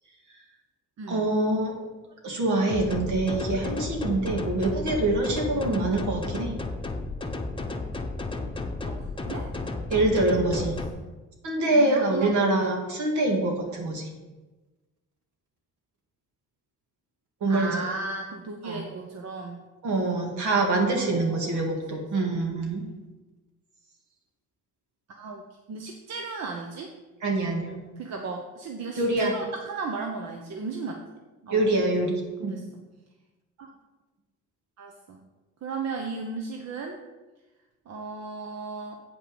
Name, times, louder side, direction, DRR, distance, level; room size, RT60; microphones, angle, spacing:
voice 1, 1.1-1.7 2.2-6.5 9.9-10.8 11.4-14.1 17.4-17.7 18.6-18.8 19.8-22.8 27.2-27.8 29.0-29.3 31.5-32.6, right 2 dB, 75° right, 1 dB, 2.2 m, -25 dB
sound 1, 2.7-10.9, left 2 dB, 15° left, 0.9 m, -33 dB
voice 2, 8.8-9.5 10.6-11.2 11.6-12.7 13.7-13.9 17.5-19.7 20.9-21.6 21.9-22.0 25.2-25.4 25.7-26.9 28.0-31.0 31.4-31.9 32.4-32.8 33.6-33.7 34.8-35.2 35.6-37.0 37.9-39.0, right 4 dB, 60° right, 2 dB, 1.0 m, -36 dB
8.6 x 5.5 x 5.4 m, 1.2 s
cardioid pair, 90°, 30 cm